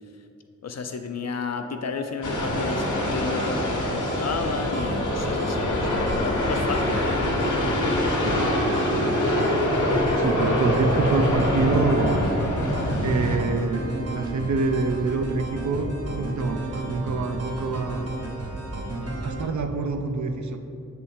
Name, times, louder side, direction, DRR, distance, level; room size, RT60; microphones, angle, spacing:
voice 1, 0.6-7.1 18.9-19.2, left 4 dB, 60° left, 6 dB, 0.4 m, -32 dB
sound 1, 2.2-13.4, left 1 dB, 80° left, 1.0 m, -24 dB
sound 2, 2.9-19.4, right 2 dB, 55° right, 1.0 m, -34 dB
voice 2, 8.2-9.9 10.2-12.4 13.0-18.1 19.2-20.6, right 3 dB, 75° right, 6 dB, 0.5 m, -26 dB
7.2 x 3.7 x 4.2 m, 2.6 s
wide cardioid pair, 95°, 30 cm